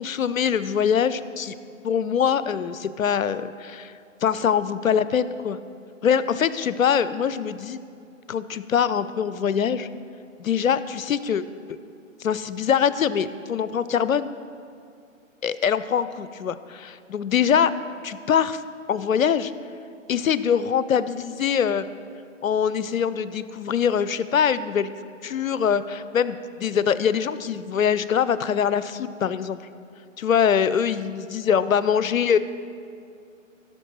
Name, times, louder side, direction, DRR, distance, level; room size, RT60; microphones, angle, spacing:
voice 1, 0.0-1.6 1.8-3.9 4.2-5.6 6.0-7.8 8.3-9.9 10.4-11.4 12.2-14.3 15.4-17.7 18.0-18.6 18.9-19.5 20.1-21.9 22.4-24.9 25.2-29.6 30.2-32.4, left 8 dB, 80° left, 15 dB, 0.5 m, -23 dB
15.5 x 6.6 x 3.1 m, 2.3 s
figure-of-eight pair, 130°, 40 cm